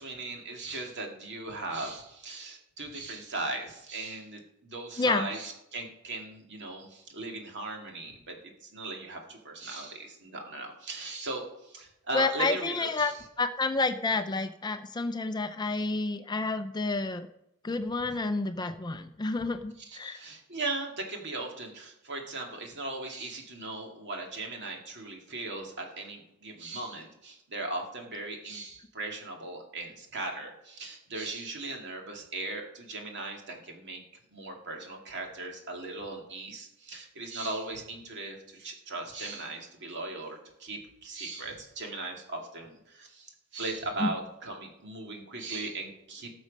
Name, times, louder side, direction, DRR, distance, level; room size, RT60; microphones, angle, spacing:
voice 1, 0.0-13.1 19.4-19.5 19.8-34.0 34.3-46.3, right 2 dB, 55° right, 2 dB, 2.2 m, -38 dB
voice 2, 5.0-5.3 12.1-17.3 17.6-20.2 44.0-44.1, left 3 dB, 20° left, 9 dB, 0.5 m, -29 dB
18.5 x 6.3 x 5.3 m, 0.84 s
head